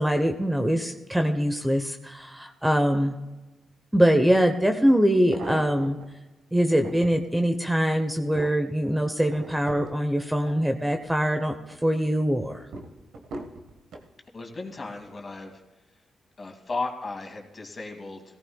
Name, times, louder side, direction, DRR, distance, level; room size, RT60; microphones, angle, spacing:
voice 1, 0.0-3.1 3.9-6.0 6.5-11.5 11.8-12.6, equal, 10° right, 6 dB, 1.1 m, -23 dB
sound 1, 4.3-4.4 5.1-6.1 6.6-7.2 7.8-11.2 11.6-12.1 12.7-14.1 14.8-15.2 15.5-15.6, right 2 dB, 70° right, 1.6 m, -40 dB
voice 2, 14.3-15.5 16.4-18.2, left 3 dB, 40° left, 2 dB, 2.5 m, -35 dB
17.5 x 14.5 x 2.4 m, 1.1 s
supercardioid pair, 60°, 0 cm